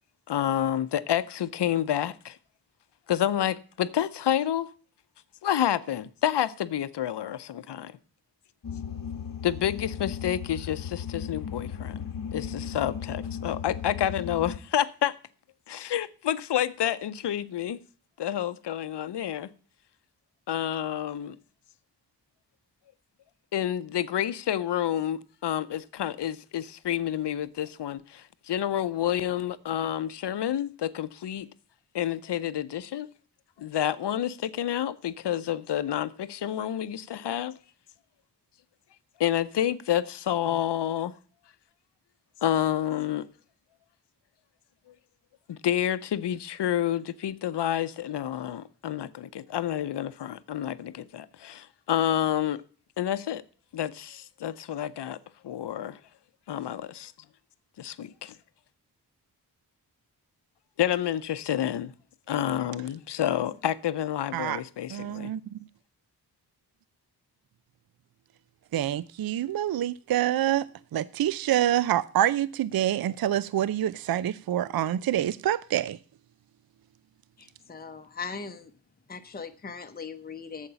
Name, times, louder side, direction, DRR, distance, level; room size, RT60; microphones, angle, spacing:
voice 1, 0.3-2.4 3.1-4.7 5.4-8.0 9.4-12.0 12.3-15.2 15.7-17.8 18.2-19.5 20.5-21.4 23.5-31.5 31.9-33.1 33.6-37.6 39.2-41.1 42.4-43.3 45.5-52.6 53.0-53.4 53.7-55.2 55.4-56.0 56.5-57.1 57.8-58.4 60.8-61.9 62.3-65.3, left 11 dB, 90° left, 0.7 m, -29 dB
sound 1, 8.6-14.6, left 7 dB, 55° left, 1.0 m, -36 dB
voice 2, 64.9-65.4 68.7-70.7 70.9-76.0, right 12 dB, 60° right, 0.5 m, -26 dB
voice 3, 77.4-78.7 79.1-80.7, left 5 dB, 25° left, 0.9 m, -39 dB
8.7 x 7.4 x 6.8 m
wide cardioid pair, 100°, 40 cm